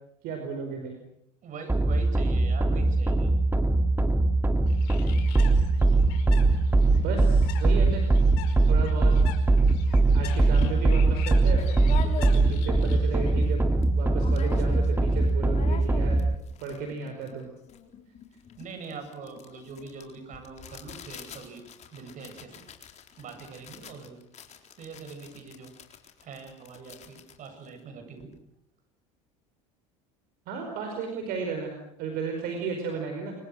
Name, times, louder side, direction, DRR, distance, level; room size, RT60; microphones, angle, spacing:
voice 1, 0.2-1.0 6.9-8.1 8.6-9.1 10.1-11.6 12.3-13.7 13.9-16.2 16.6-17.5 30.5-33.3, right 5 dB, 65° right, 4 dB, 5.0 m, -34 dB
voice 2, 1.4-3.3 18.6-21.6 21.9-22.5 23.2-24.2 24.8-25.7 26.2-28.3, right 5 dB, 50° right, 7 dB, 8.0 m, -43 dB
sound 1, 1.7-16.3, right 2 dB, 10° right, 2.1 m, -22 dB
Bird, 4.7-13.5, left 11 dB, 75° left, 5.1 m, -45 dB
sound 2, 9.9-10.0 10.4-12.7 13.2-13.3 13.4-13.9 14.2-15.0 15.3-28.4, left 8 dB, 45° left, 4.1 m, -44 dB
26.0 x 24.5 x 6.5 m, 0.78 s
supercardioid pair, 90°, 17 cm